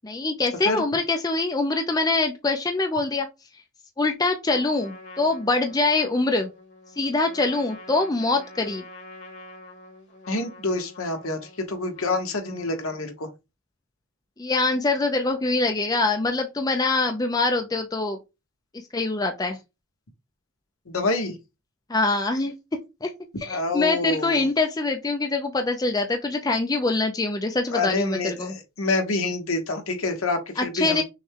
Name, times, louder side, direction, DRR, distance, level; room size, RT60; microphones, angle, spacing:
voice 1, 0.0-3.3 4.0-6.5 7.0-8.8 14.4-18.2 18.9-19.6 21.9-23.1 23.4-28.5 30.6-31.0, left 3 dB, 15° left, 0.4 m, -24 dB
Trumpet, 4.4-13.1, left 1 dB, 50° left, 1.9 m, -46 dB
voice 2, 10.3-13.3 20.9-21.4 23.5-24.4 27.7-31.0, left 3 dB, 70° left, 1.1 m, -27 dB
6.2 x 2.2 x 3.6 m
head